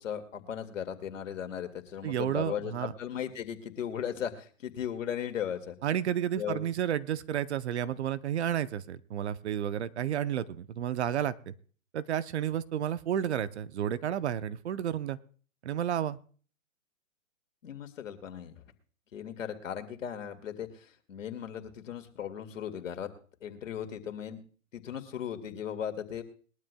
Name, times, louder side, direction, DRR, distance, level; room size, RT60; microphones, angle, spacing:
voice 1, 0.0-5.8 6.3-6.6 17.6-18.6 19.1-23.1 23.4-24.4 24.7-26.2, left 9 dB, 70° left, 7 dB, 2.2 m, -37 dB
voice 2, 2.0-2.9 5.8-11.5 11.9-15.2 15.6-16.2, right 10 dB, 55° right, 14 dB, 0.8 m, -31 dB
21.5 x 12.5 x 2.3 m, 0.42 s
hypercardioid pair, 145°, 40 cm